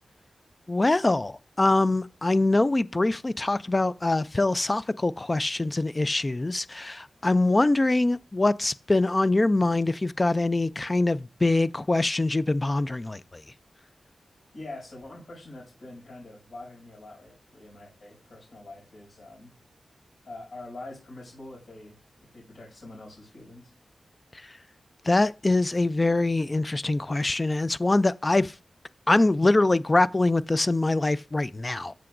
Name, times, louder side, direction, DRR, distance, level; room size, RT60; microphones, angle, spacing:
voice 1, 0.7-13.4 25.0-28.5 29.1-31.9, left 2 dB, 25° left, 0.3 m, -24 dB
voice 2, 14.5-19.6 20.2-23.7, left 2 dB, 60° left, 5.9 m, -44 dB
13.5 x 6.8 x 2.5 m
wide cardioid pair, 150°, 0 cm